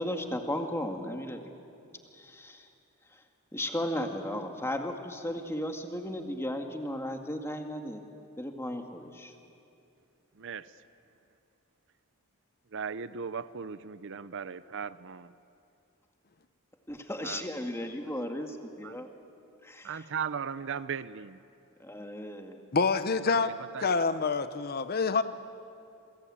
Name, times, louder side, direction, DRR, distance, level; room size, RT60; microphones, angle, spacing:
voice 1, 0.0-1.4 2.1-2.7 3.5-8.0 8.4-9.3 16.9-19.1 19.6-19.9 21.8-22.6, left 1 dB, 10° left, 4 dB, 2.0 m, -35 dB
voice 2, 10.3-10.8 12.7-15.3 17.2-17.7 18.8-19.0 19.8-21.4 23.3-24.0, right 6 dB, 60° right, 15 dB, 0.7 m, -38 dB
voice 3, 22.7-23.5 23.8-25.2, left 4 dB, 45° left, 11 dB, 0.8 m, -26 dB
27.5 x 23.0 x 8.8 m, 2.6 s
head